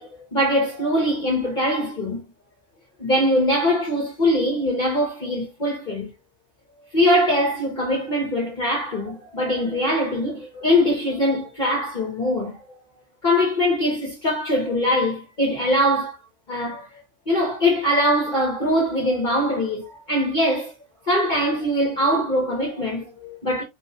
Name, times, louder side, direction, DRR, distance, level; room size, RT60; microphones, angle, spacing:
voice 1, 0.0-2.2 3.0-6.1 6.9-12.8 13.2-16.1 16.5-20.7 21.0-23.6, equal, 40° left, 0.9 m, -22 dB
3.6 x 3.0 x 2.6 m
omnidirectional pair, 1.6 m